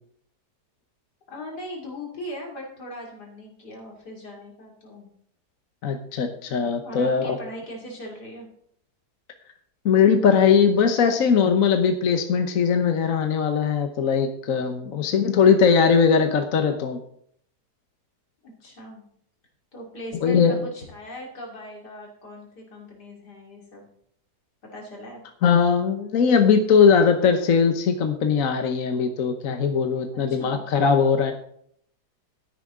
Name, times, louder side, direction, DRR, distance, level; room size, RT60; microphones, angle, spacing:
voice 1, 1.3-5.1 6.5-8.5 18.4-19.0 19.7-20.4 20.7-23.8 24.7-25.2 30.1-30.6, left 1 dB, 75° left, -1 dB, 3.3 m, -40 dB
voice 2, 5.8-7.4 9.8-17.0 20.2-20.6 25.4-31.3, left 6 dB, 60° left, 6 dB, 1.3 m, -20 dB
13.0 x 10.0 x 3.7 m, 0.69 s
omnidirectional pair, 1.8 m